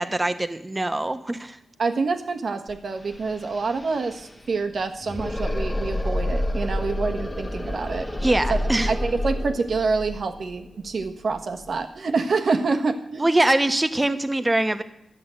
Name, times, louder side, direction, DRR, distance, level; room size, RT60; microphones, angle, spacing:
voice 1, 0.0-1.6 8.2-8.9 13.2-14.8, right 1 dB, 20° right, 9 dB, 1.1 m, -23 dB
voice 2, 1.8-8.1 8.5-8.6 8.9-13.3, right 4 dB, 65° right, 6 dB, 1.3 m, -26 dB
sound 1, 2.7-2.8 3.0-11.8, left 1 dB, 25° left, 1.4 m, -29 dB
11.0 x 7.7 x 7.7 m, 0.75 s
cardioid pair, 55°, 0 cm